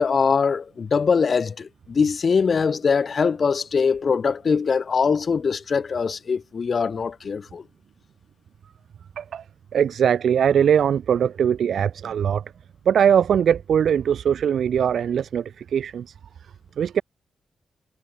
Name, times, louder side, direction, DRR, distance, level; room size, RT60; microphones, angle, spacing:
voice 1, 0.0-7.6, left 5 dB, 45° left, 4.7 m, -22 dB
voice 2, 9.7-12.4 12.9-16.1 16.8-17.0, right 8 dB, 70° right, 5.6 m, -21 dB
wide cardioid pair, 125°, 0 cm